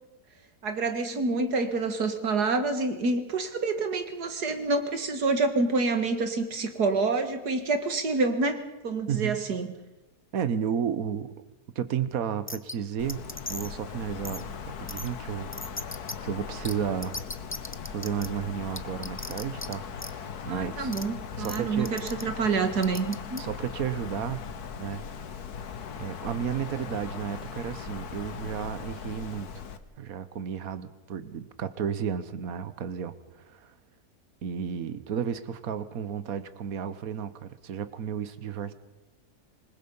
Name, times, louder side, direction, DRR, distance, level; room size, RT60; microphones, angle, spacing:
voice 1, 0.6-9.7 20.5-23.4, right 3 dB, 85° right, 7 dB, 2.5 m, -27 dB
voice 2, 9.1-9.4 10.3-11.3 11.7-15.5 16.2-17.2 17.8-20.9 21.4-22.0 23.4-24.5 24.7-25.0 26.0-29.6 30.0-33.7 34.4-38.7, right 8 dB, 65° right, 13 dB, 1.5 m, -33 dB
sound 1, 12.5-12.7 13.1-13.7 14.2-14.4 14.9-15.1 15.5-16.1 16.6-16.7 17.0-18.3 18.8-19.7 20.0-20.1 20.9-21.0 21.4-21.6 21.9-22.2 22.8-23.4, left 2 dB, 20° left, 0.3 m, -37 dB
Wind, 13.0-29.8, left 6 dB, 75° left, 1.7 m, -39 dB
26.5 x 20.5 x 5.6 m, 1.0 s
omnidirectional pair, 1.7 m